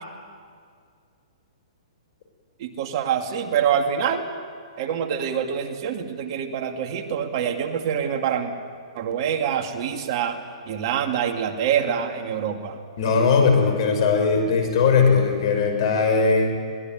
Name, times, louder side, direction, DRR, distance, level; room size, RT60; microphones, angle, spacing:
voice 1, 2.6-4.2 4.8-8.5 9.0-10.4 10.7-12.8, right 8 dB, 45° right, 5 dB, 2.3 m, -25 dB
voice 2, 13.0-16.5, left 5 dB, 55° left, 5 dB, 5.9 m, -19 dB
22.5 x 18.5 x 9.3 m, 2.1 s
hypercardioid pair, 130°, 3 cm